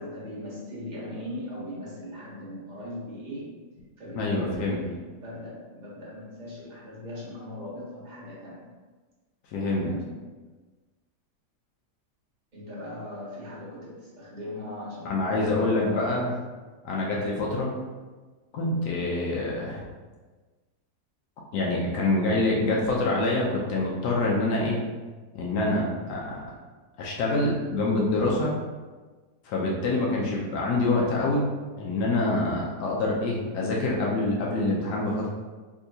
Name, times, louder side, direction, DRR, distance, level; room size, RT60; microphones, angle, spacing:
voice 1, 0.0-3.5 4.0-4.9 5.2-8.6 9.7-10.1 12.5-16.4, left 1 dB, 35° right, -7 dB, 0.9 m, -39 dB
voice 2, 4.1-4.8 9.5-9.9 15.0-16.3 16.8-17.7 18.5-19.9 21.5-24.8 25.3-26.4 27.0-28.5 29.4-31.5 31.8-35.3, left 2 dB, 90° left, -3 dB, 1.2 m, -26 dB
3.5 x 2.7 x 2.6 m, 1.3 s
omnidirectional pair, 1.7 m